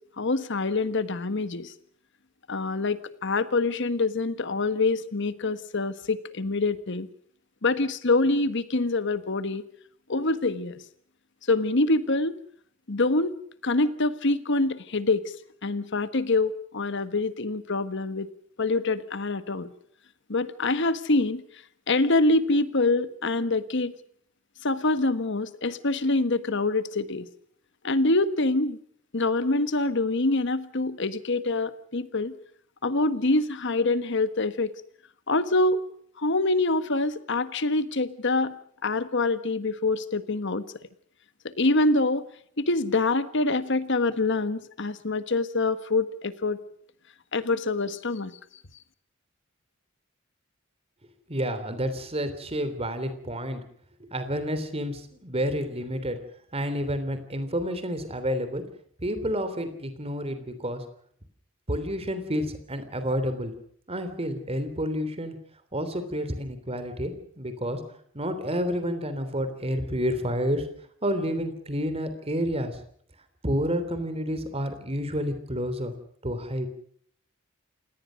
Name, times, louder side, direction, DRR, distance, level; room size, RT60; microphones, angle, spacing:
voice 1, 0.2-1.7 2.5-7.1 7.6-9.6 10.1-10.8 11.5-12.4 12.9-13.4 13.6-15.2 15.6-18.3 18.6-19.7 20.3-21.4 21.9-23.9 24.6-27.3 27.8-28.8 29.1-32.3 32.8-34.7 35.3-35.8 36.2-38.5 38.8-40.6 41.6-42.2 42.6-46.6 47.3-48.3, left 2 dB, 60° left, 13 dB, 1.4 m, -25 dB
voice 2, 51.3-53.6 54.0-56.2 56.5-58.6 59.0-60.8 61.7-63.5 63.9-65.3 65.7-67.8 68.1-70.6 71.0-72.8 73.4-75.9 76.2-76.7, equal, 30° right, 10 dB, 3.2 m, -29 dB
27.5 x 18.5 x 6.4 m, 0.62 s
head